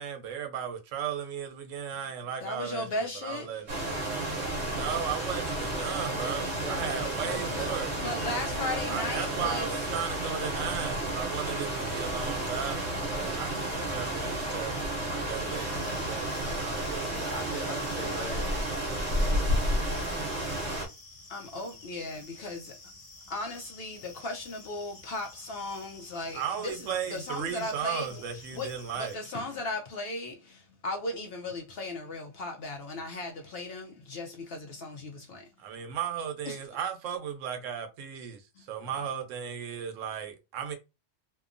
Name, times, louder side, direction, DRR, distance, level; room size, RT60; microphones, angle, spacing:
voice 1, 0.0-4.2 4.7-7.9 8.9-17.1 26.3-29.2 35.6-40.8, right 8 dB, 80° right, 1.0 m, -36 dB
voice 2, 2.4-3.6 5.8-6.0 8.0-9.7 18.9-19.0 21.3-22.7 23.3-26.8 27.1-28.2 28.5-28.7 29.0-35.4 36.5-36.6, left 2 dB, 65° left, 0.7 m, -36 dB
sound 1, 3.7-20.9, right 1 dB, 60° right, 1.1 m, -31 dB
voice 3, 4.2-4.9 6.1-8.9 17.1-20.7, equal, 10° right, 1.1 m, -43 dB
sound 2, 15.5-29.2, left 3 dB, 80° left, 1.3 m, -51 dB
2.8 x 2.2 x 2.4 m
omnidirectional pair, 1.3 m